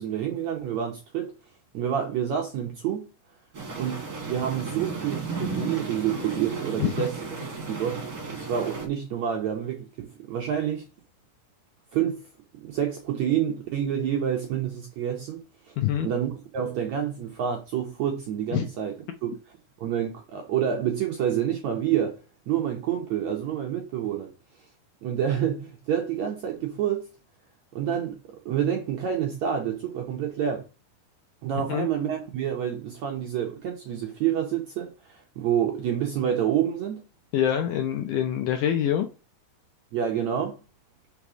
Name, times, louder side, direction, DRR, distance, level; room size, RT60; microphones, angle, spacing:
voice 1, 0.0-1.3 1.7-3.0 3.8-10.8 11.9-12.2 12.5-15.7 16.0-18.9 19.2-19.4 19.8-22.2 22.5-24.3 25.0-27.1 27.7-30.7 31.4-37.0 39.9-40.6, right 9 dB, 75° right, 1.7 m, -28 dB
sound 1, 3.5-8.8, right 4 dB, 35° right, 1.8 m, -34 dB
voice 2, 15.8-16.1 18.5-18.7 31.7-31.9 37.3-39.1, left 10 dB, 80° left, 1.9 m, -25 dB
5.2 x 4.8 x 5.9 m
omnidirectional pair, 4.4 m